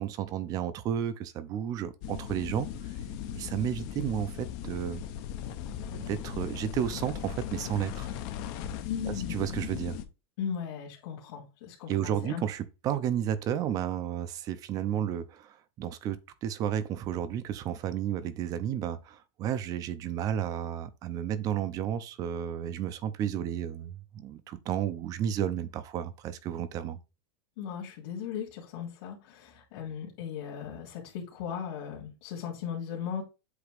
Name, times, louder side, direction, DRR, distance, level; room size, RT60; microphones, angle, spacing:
voice 1, 0.0-2.7 3.4-5.0 5.9-8.1 9.0-10.0 11.9-27.0, right 10 dB, 25° right, 0.6 m, -32 dB
sound 1, 2.0-10.0, left 9 dB, 40° left, 0.7 m, -38 dB
voice 2, 8.9-9.4 10.4-12.4 27.6-33.2, left 8 dB, 60° left, 2.4 m, -37 dB
8.0 x 2.9 x 5.1 m
supercardioid pair, 170°, 14 cm